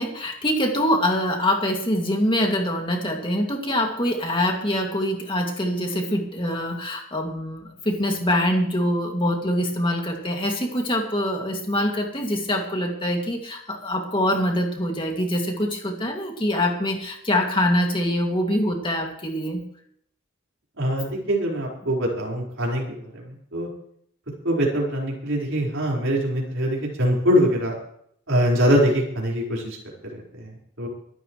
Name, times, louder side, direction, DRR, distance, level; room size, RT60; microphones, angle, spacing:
voice 1, 0.0-19.6, left 1 dB, 25° left, 1 dB, 2.4 m, -24 dB
voice 2, 20.8-23.7 24.4-27.7 28.3-29.8 30.1-30.5 30.8-30.9, equal, 70° right, -3 dB, 4.8 m, -23 dB
24.0 x 12.0 x 3.2 m, 0.67 s
head